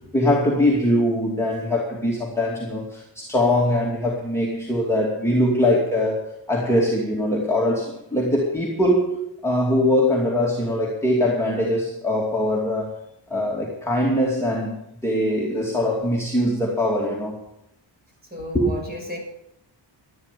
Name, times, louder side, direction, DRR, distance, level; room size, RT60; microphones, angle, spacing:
voice 1, 0.1-13.0 13.3-14.7 15.0-17.4 18.5-18.7, left 1 dB, 5° left, -4 dB, 2.6 m, -22 dB
voice 2, 18.3-19.2, equal, 20° right, 0 dB, 6.4 m, -34 dB
12.5 x 12.0 x 6.9 m, 0.78 s
wide cardioid pair, 145°, 46 cm